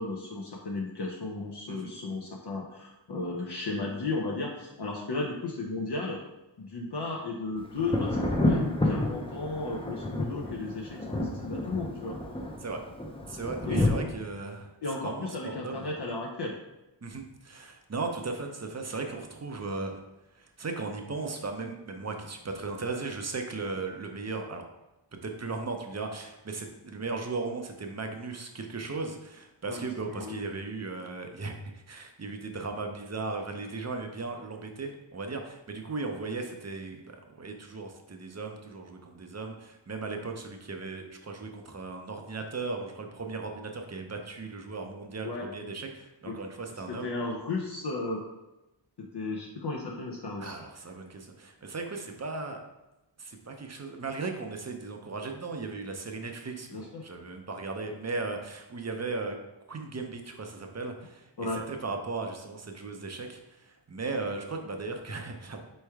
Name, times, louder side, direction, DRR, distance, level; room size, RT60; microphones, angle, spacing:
voice 1, 0.0-6.2 6.6-8.2 8.4-12.1 13.7-14.0 14.8-16.5 29.7-30.5 45.2-45.4 46.3-46.4 47.0-48.2 49.1-50.6 56.7-57.0 61.4-61.6, left 3 dB, 60° left, -2 dB, 0.7 m, -34 dB
Thunder, 7.8-13.9, left 1 dB, 10° left, 0.6 m, -30 dB
voice 2, 13.3-14.7 15.0-15.9 17.0-19.9 20.3-24.6 25.2-31.6 31.9-47.1 50.4-52.6 53.2-59.4 59.7-61.3 61.5-65.6, right 3 dB, 35° right, 4 dB, 0.6 m, -37 dB
4.3 x 3.2 x 3.5 m, 0.97 s
wide cardioid pair, 60°, 47 cm